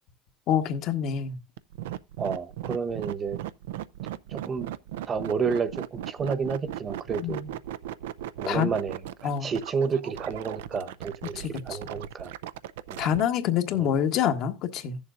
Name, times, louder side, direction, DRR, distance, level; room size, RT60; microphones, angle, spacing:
voice 1, 0.5-1.4 7.2-7.5 8.5-8.7 9.2-9.5 11.3-11.8 13.0-15.0, left 9 dB, 65° left, 1.3 m, -26 dB
sound 1, 1.6-13.2, right 12 dB, 85° right, 0.4 m, -37 dB
voice 2, 2.2-3.4 4.3-4.7 5.1-7.4 8.4-12.3 12.9-13.0 13.7-13.9, right 5 dB, 40° right, 1.1 m, -30 dB
16.5 x 7.0 x 2.6 m
hypercardioid pair, 80°, 0 cm